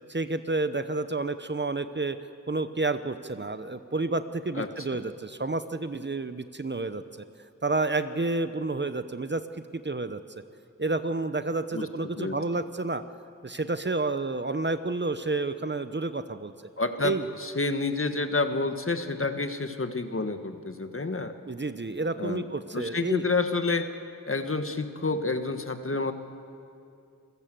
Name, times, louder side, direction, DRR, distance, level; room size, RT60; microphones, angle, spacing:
voice 1, 0.1-2.2 2.5-7.0 7.6-9.4 9.7-10.2 10.8-13.0 13.4-16.5 17.0-17.3 21.5-23.3, right 3 dB, 35° right, 11 dB, 0.9 m, -30 dB
voice 2, 4.5-5.0 11.7-11.9 12.2-12.4 16.8-17.1 17.4-21.3 22.2-22.5 22.7-23.9 24.2-26.1, left 3 dB, 40° left, 8 dB, 1.6 m, -29 dB
27.5 x 15.5 x 7.7 m, 2.5 s
cardioid pair, 45°, 33 cm